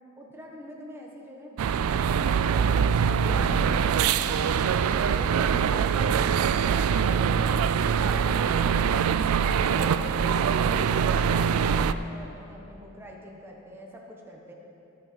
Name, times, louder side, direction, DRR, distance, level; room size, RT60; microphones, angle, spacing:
voice 1, 0.2-2.5 8.1-9.3 9.7-14.5, equal, 10° right, -1 dB, 1.2 m, -43 dB
sound 1, 1.6-11.9, right 7 dB, 75° right, 0.3 m, -23 dB
17.5 x 6.5 x 4.5 m, 2.8 s
head